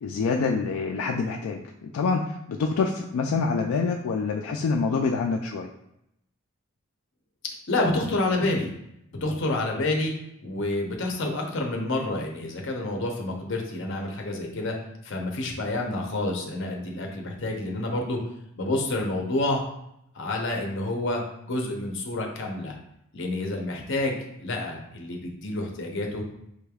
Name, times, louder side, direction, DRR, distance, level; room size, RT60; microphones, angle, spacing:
voice 1, 0.0-5.7, left 4 dB, 85° left, 1 dB, 0.3 m, -26 dB
voice 2, 7.7-8.7 9.1-10.1 10.4-14.8 15.0-18.2 18.6-19.6 20.1-22.8 23.1-26.2, left 2 dB, 60° left, 1 dB, 0.7 m, -28 dB
5.0 x 3.3 x 2.3 m, 0.79 s
head